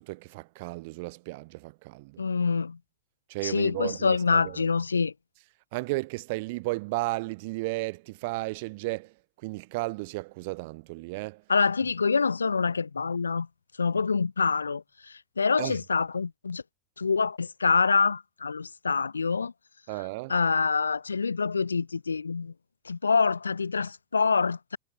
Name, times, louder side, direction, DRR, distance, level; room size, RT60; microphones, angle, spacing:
voice 1, 0.0-2.2 3.3-4.7 5.7-9.1 9.4-11.4 15.6-15.8 19.9-20.3, right 24 dB, 50° right, 2.2 m, -34 dB
voice 2, 2.2-2.8 3.4-5.1 11.5-13.5 13.8-16.6 17.0-19.5 20.3-22.5 22.8-24.8, left 5 dB, 75° left, 4.2 m, -26 dB
figure-of-eight pair, 90°, 0 cm